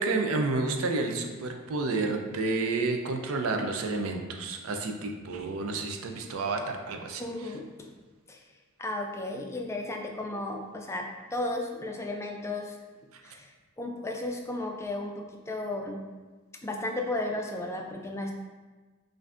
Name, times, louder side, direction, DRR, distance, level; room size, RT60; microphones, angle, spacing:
voice 1, 0.0-7.2, right 3 dB, 75° right, 4 dB, 0.5 m, -30 dB
voice 2, 7.2-7.9 8.3-8.4 8.8-12.8 13.2-13.5 13.8-16.0 16.6-18.3, left 2 dB, 15° left, 2 dB, 0.3 m, -34 dB
5.4 x 2.5 x 2.5 m, 1.3 s
head